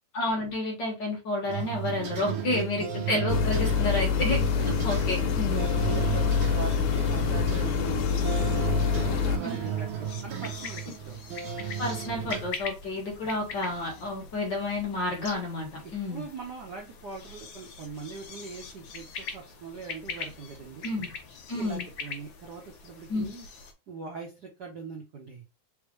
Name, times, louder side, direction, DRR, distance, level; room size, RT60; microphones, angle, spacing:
voice 1, 0.1-4.4 4.8-5.7 9.4-9.5 11.8-16.2 20.8-21.1 21.5-21.9 23.1-23.3, left 2 dB, 45° left, -1 dB, 1.7 m, -30 dB
sound 1, 1.5-12.5, right 9 dB, 70° right, 1.2 m, -34 dB
voice 2, 2.3-2.9 4.5-4.9 5.4-11.2 15.8-20.9 21.5-23.5 23.9-25.4, right 5 dB, 85° right, -2 dB, 0.9 m, -41 dB
sound 2, 3.3-9.4, left 7 dB, 90° left, 2.1 m, -26 dB
sound 3, 4.2-23.7, left 5 dB, 70° left, 1.2 m, -43 dB
4.5 x 3.6 x 3.1 m, 0.27 s
omnidirectional pair, 3.4 m